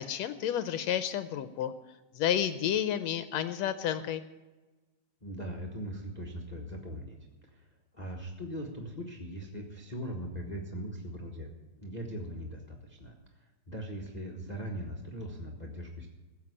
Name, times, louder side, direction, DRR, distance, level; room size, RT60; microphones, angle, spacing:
voice 1, 0.0-1.7 2.2-4.2, left 10 dB, 75° left, 12 dB, 1.8 m, -31 dB
voice 2, 5.2-7.2 7.5-7.7 7.9-11.5 11.8-13.1 13.4-16.1, equal, 25° left, 1 dB, 0.9 m, -40 dB
16.0 x 7.3 x 9.7 m, 1.2 s
omnidirectional pair, 3.3 m